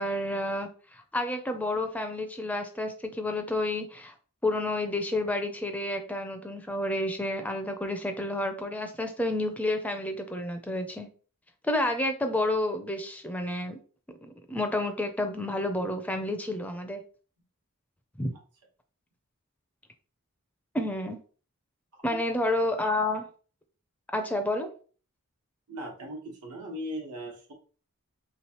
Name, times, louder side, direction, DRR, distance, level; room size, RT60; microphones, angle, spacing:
voice 1, 0.0-4.1 4.4-11.1 11.6-13.8 14.2-17.0 18.2-18.3 20.7-21.2 22.0-23.3 24.1-24.7, left 1 dB, 5° left, 6 dB, 0.4 m, -30 dB
voice 2, 21.9-22.2 25.7-27.5, equal, 90° right, 0 dB, 1.2 m, -39 dB
3.3 x 3.1 x 2.9 m, 0.40 s
head